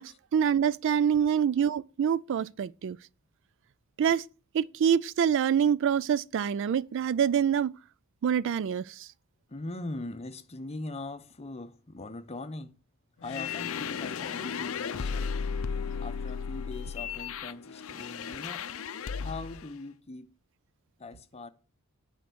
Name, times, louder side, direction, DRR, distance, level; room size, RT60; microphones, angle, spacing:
voice 1, 0.0-3.0 4.0-4.2 4.5-7.7 8.2-9.1, right 8 dB, 60° right, 0.3 m, -26 dB
voice 2, 9.5-12.7 13.2-15.4 16.0-18.7 19.2-20.3 21.0-21.5, left 2 dB, 30° left, 0.7 m, -41 dB
sound 1, 13.2-19.7, left 6 dB, 65° left, 0.5 m, -35 dB
9.5 x 4.5 x 6.2 m
head